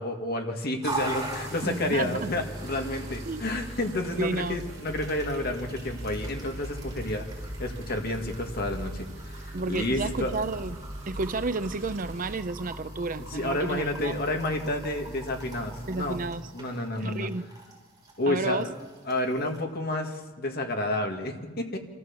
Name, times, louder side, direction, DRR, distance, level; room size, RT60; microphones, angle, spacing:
voice 1, 0.0-7.3 7.6-10.3 13.3-16.2 16.5-17.3 18.2-18.7 19.1-21.8, left 1 dB, 50° left, 2.1 m, -30 dB
Coffee machine - Extract, 0.8-19.6, right 1 dB, 20° right, 5.7 m, -40 dB
voice 2, 1.6-2.3 3.3-3.4 4.2-4.6 9.5-10.8 11.1-14.2 15.9-16.5 17.0-17.5 18.3-18.7, right 3 dB, 45° right, 0.7 m, -31 dB
sound 1, 2.5-12.4, right 1 dB, 85° right, 2.2 m, -42 dB
27.0 x 14.5 x 7.4 m
head